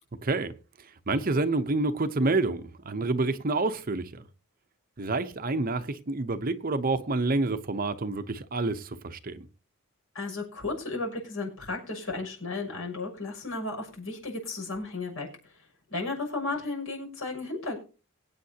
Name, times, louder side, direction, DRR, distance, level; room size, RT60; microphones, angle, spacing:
voice 1, 0.2-0.5 1.1-4.2 5.0-9.5, right 2 dB, 40° right, 0.8 m, -28 dB
voice 2, 10.1-15.3 15.9-17.8, left 3 dB, 70° left, 6.4 m, -34 dB
23.5 x 8.9 x 2.8 m
head